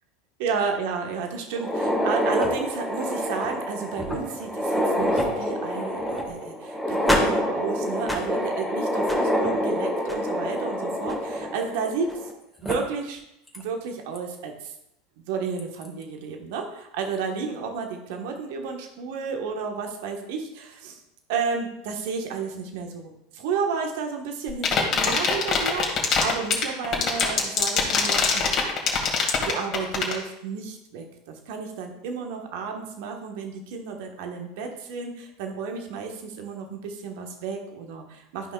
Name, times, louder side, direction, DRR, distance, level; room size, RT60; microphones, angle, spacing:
voice 1, 0.4-12.3 12.6-13.2 13.5-14.7 15.3-21.0 21.3-28.5 29.1-38.5, right 5 dB, 60° right, 3 dB, 1.2 m, -32 dB
sound 1, 1.5-12.3 12.6-12.7 13.5-13.6 14.2-14.3 15.6-15.9, equal, ahead, 1.7 m, -26 dB
sound 2, 24.5-30.2, left 6 dB, 40° left, 2.1 m, -22 dB
12.5 x 5.5 x 2.3 m, 0.83 s
hypercardioid pair, 80°, 0 cm